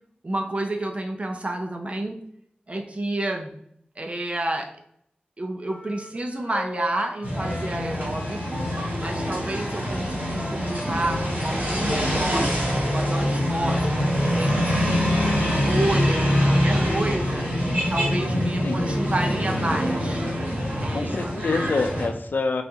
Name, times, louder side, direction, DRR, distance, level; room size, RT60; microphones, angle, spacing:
voice 1, 0.2-2.2 2.7-3.5 4.0-4.8 5.4-8.7 9.0-14.9 15.3-17.5 17.9-20.2 20.8-21.4, right 1 dB, 40° right, 4 dB, 0.7 m, -30 dB
sound 1, 5.7-12.2, left 2 dB, 45° left, 0.8 m, -40 dB
sound 2, 7.2-22.1, equal, 85° right, 1.7 m, -24 dB
sound 3, 10.8-17.0, equal, 5° right, 1.2 m, -41 dB
voice 2, 20.9-22.6, left 3 dB, 75° left, 6 dB, 0.5 m, -26 dB
4.1 x 3.5 x 2.8 m, 0.70 s
wide cardioid pair, 65°, 3 cm